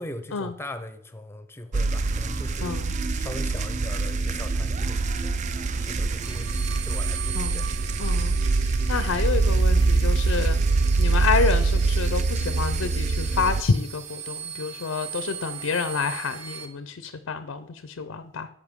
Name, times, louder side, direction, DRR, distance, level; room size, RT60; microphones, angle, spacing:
voice 1, 0.0-2.8 3.2-5.4 5.8-7.7, left 1 dB, 10° left, 0.6 m, -40 dB
sound 1, 1.7-13.6, right 3 dB, 35° right, 0.3 m, -24 dB
voice 2, 2.6-3.0 7.3-7.6 8.0-8.3 8.9-10.6 11.0-18.5, left 5 dB, 80° left, 0.5 m, -28 dB
sound 2, 6.2-16.7, right 8 dB, 75° right, 1.0 m, -38 dB
13.0 x 5.3 x 3.6 m
head